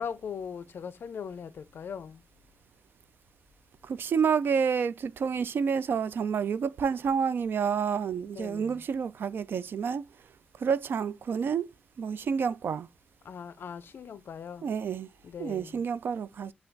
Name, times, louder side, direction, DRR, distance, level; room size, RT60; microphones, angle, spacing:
voice 1, 0.0-2.2 8.3-8.8 13.2-14.7 15.2-15.8, left 7 dB, 90° left, 0.4 m, -39 dB
voice 2, 3.8-10.0 10.6-11.7 12.0-12.9 14.6-15.1 15.4-16.5, right 6 dB, 90° right, 0.3 m, -29 dB
5.5 x 2.2 x 3.9 m
wide cardioid pair, 160°, 4 cm